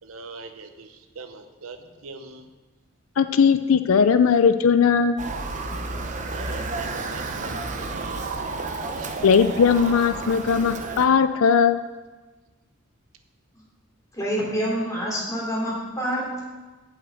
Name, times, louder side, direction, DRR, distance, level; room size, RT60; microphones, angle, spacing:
voice 1, 0.0-2.5 6.3-8.3 9.0-9.1, right 3 dB, 80° right, 7 dB, 0.8 m, -42 dB
voice 2, 3.2-5.2 9.2-11.8, left 6 dB, 80° left, 11 dB, 0.5 m, -18 dB
Motor vehicle (road) / Siren, 5.2-11.1, right 3 dB, 35° right, 0.7 m, -31 dB
voice 3, 14.1-16.4, equal, 15° left, -5 dB, 3.0 m, -27 dB
8.1 x 5.7 x 7.8 m, 1.2 s
head